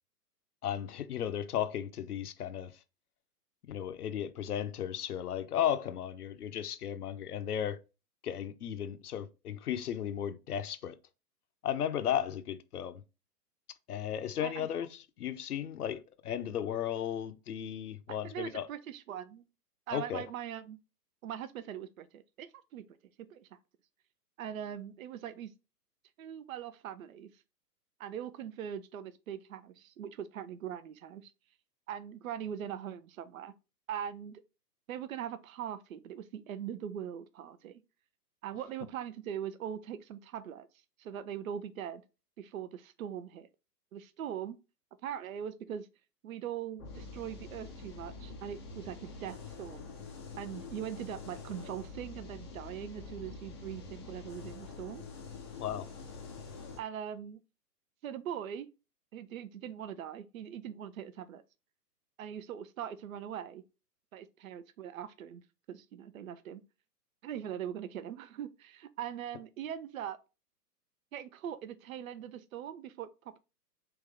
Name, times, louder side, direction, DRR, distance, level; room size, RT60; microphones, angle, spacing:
voice 1, 0.6-2.7 3.7-7.8 8.2-11.0 11.6-13.0 13.9-18.7 19.9-20.2 55.6-55.9, left 9 dB, 65° left, 0.8 m, -35 dB
voice 2, 18.1-19.4 19.9-20.8 21.2-22.8 23.3-23.5 24.4-25.5 26.2-27.3 28.0-31.3 31.9-33.5 33.9-34.4 34.9-37.8 38.4-40.7 41.0-42.0 42.4-43.5 43.9-44.6 45.0-45.9 46.2-49.9 50.4-55.0 56.8-57.4 58.0-58.7 59.1-61.4 62.2-63.6 64.1-65.4 65.7-66.6 67.2-70.2 71.1-73.1, right 9 dB, 55° right, 0.6 m, -41 dB
sound 1, 46.8-56.8, left 4 dB, 20° left, 0.5 m, -46 dB
3.5 x 3.0 x 3.4 m
figure-of-eight pair, 120°, 49 cm